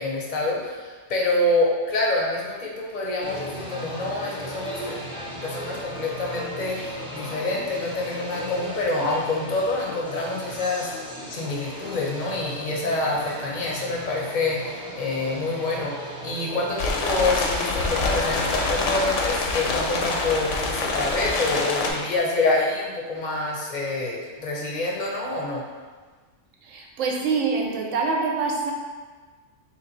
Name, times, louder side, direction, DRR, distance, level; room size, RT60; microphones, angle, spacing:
voice 1, 0.0-5.0 5.4-10.9 11.3-25.6, left 2 dB, 45° left, -2 dB, 0.6 m, -27 dB
sound 1, 3.2-22.2, equal, 5° right, 0.4 m, -36 dB
sound 2, 16.8-21.9, left 3 dB, 75° left, 0.9 m, -26 dB
voice 2, 26.6-28.7, right 4 dB, 80° right, 0 dB, 1.0 m, -25 dB
3.2 x 3.0 x 3.8 m, 1.4 s
omnidirectional pair, 1.3 m